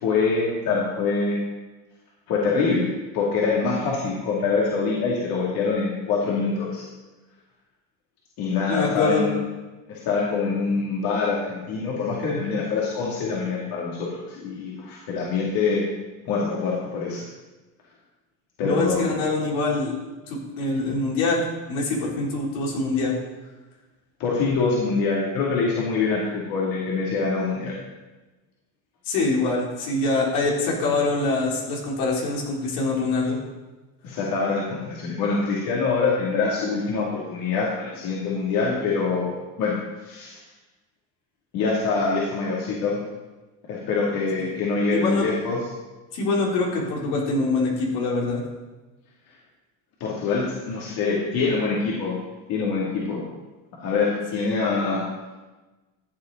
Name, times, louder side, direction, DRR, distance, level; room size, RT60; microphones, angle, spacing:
voice 1, 0.0-1.4 2.3-6.8 8.4-9.3 9.9-15.8 16.2-17.3 18.6-19.1 24.2-27.8 34.0-39.8 40.0-40.4 41.5-43.0 43.7-45.6 50.0-52.2 52.5-53.2 53.8-55.0, left 4 dB, 60° left, -5 dB, 2.8 m, -25 dB
voice 2, 8.7-9.3 18.6-19.9 20.3-23.1 29.1-33.4 44.4-44.5 44.9-45.2 46.1-48.4, left 3 dB, 80° left, -2 dB, 3.6 m, -24 dB
14.0 x 7.9 x 4.0 m, 1.2 s
supercardioid pair, 110°, 38 cm